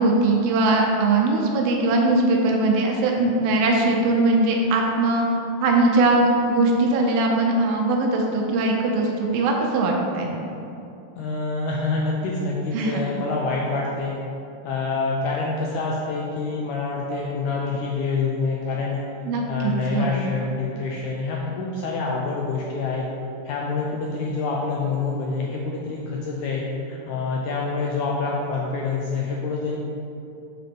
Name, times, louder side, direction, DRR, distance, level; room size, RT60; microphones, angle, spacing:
voice 1, 0.0-5.2 5.6-10.3 12.7-13.0 19.2-20.1, right 2 dB, 90° right, 0 dB, 2.7 m, -20 dB
voice 2, 11.2-14.1 14.6-19.0 19.5-23.1 23.4-29.8, left 4 dB, 80° left, -2 dB, 1.7 m, -26 dB
7.0 x 3.8 x 5.3 m, 2.7 s
omnidirectional pair, 4.0 m